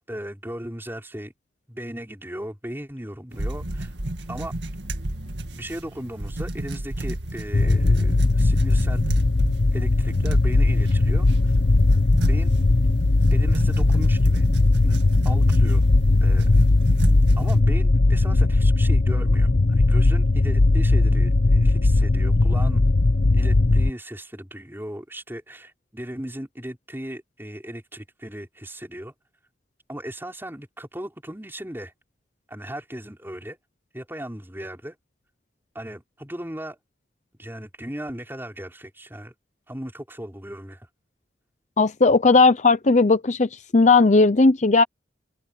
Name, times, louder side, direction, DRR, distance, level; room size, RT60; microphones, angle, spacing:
voice 1, 0.1-1.3 1.7-3.9 4.3-4.5 5.5-9.1 9.7-11.3 12.1-12.5 13.3-14.5 14.8-15.9 16.2-16.5 17.4-22.8 23.3-29.1 29.9-31.9 32.5-33.6 33.9-35.0 35.7-36.8 37.4-39.3 39.7-40.9, right 1 dB, 15° right, 5.6 m, -37 dB
sound 1, 3.3-17.6, right 1 dB, 85° right, 2.0 m, -32 dB
sound 2, 7.5-23.9, left 2 dB, 75° left, 0.9 m, -18 dB
voice 2, 41.8-44.8, left 3 dB, 40° left, 0.7 m, -17 dB
head